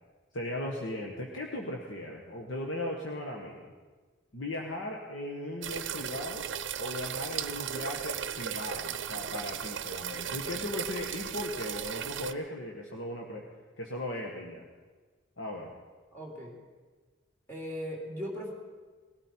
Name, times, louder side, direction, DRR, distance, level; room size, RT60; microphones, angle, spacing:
voice 1, 0.3-3.7 4.3-6.5 6.8-13.4 13.8-14.6 15.4-15.7, left 1 dB, 80° left, 0 dB, 1.4 m, -37 dB
sound 1, 5.6-12.3, right 8 dB, 70° right, 0.6 m, -36 dB
voice 2, 16.1-16.6 17.5-18.5, equal, 15° left, -2 dB, 2.8 m, -38 dB
20.0 x 13.0 x 4.5 m, 1.4 s
head